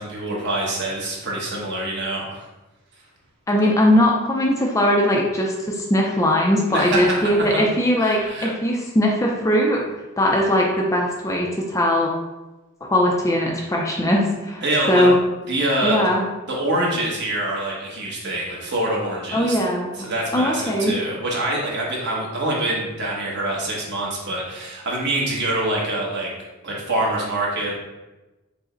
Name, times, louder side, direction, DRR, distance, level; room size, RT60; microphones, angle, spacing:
voice 1, 0.0-2.4 6.7-7.6 8.0-8.5 14.6-15.1 15.5-16.1 16.5-19.6 20.0-26.3 26.6-27.7, right 1 dB, 50° right, -3 dB, 1.0 m, -25 dB
voice 2, 3.5-9.8 10.2-12.1 12.8-15.2 15.8-16.3 19.3-20.1 20.3-20.9, left 1 dB, 15° left, -1 dB, 0.4 m, -20 dB
4.9 x 2.0 x 3.8 m, 1.1 s
head